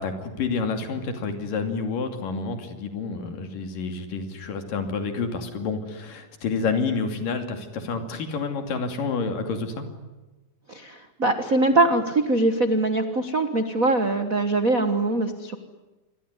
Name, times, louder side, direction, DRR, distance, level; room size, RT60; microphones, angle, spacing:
voice 1, 0.0-9.9, left 4 dB, 75° left, 6 dB, 4.3 m, -29 dB
voice 2, 10.7-15.6, right 2 dB, 50° right, 8 dB, 0.9 m, -22 dB
27.0 x 22.5 x 9.7 m, 1.1 s
omnidirectional pair, 3.9 m